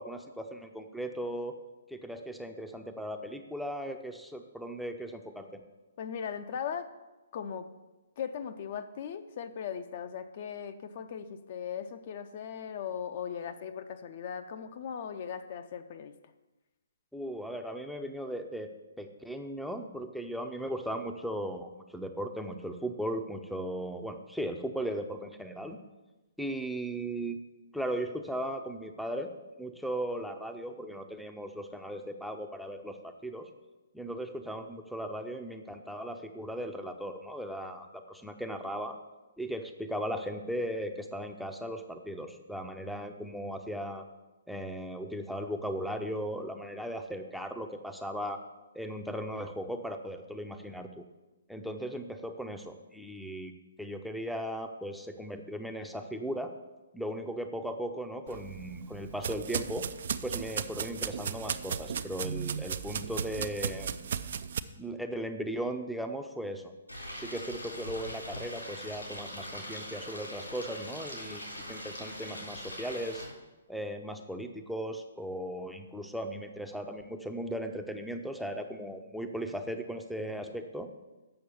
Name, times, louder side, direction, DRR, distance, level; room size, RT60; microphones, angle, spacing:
voice 1, 0.0-1.6 1.9-5.6 17.1-18.7 19.0-25.8 26.4-27.4 27.7-29.3 29.6-33.5 33.9-39.0 39.4-44.0 44.5-48.4 48.7-51.0 51.5-53.5 53.8-56.5 56.9-59.9 60.2-63.9 64.8-66.7 67.1-73.2 73.7-80.9, equal, ahead, 5 dB, 0.6 m, -37 dB
voice 2, 6.0-6.9 7.3-7.7 8.2-16.1, left 7 dB, 40° left, 8 dB, 0.6 m, -38 dB
sound 1, 58.3-64.6, right 7 dB, 50° right, 0.4 m, -36 dB
Stream, 66.9-73.2, left 1 dB, 85° left, 3.5 m, -42 dB
7.8 x 6.2 x 7.0 m, 1.1 s
figure-of-eight pair, 125°, 0 cm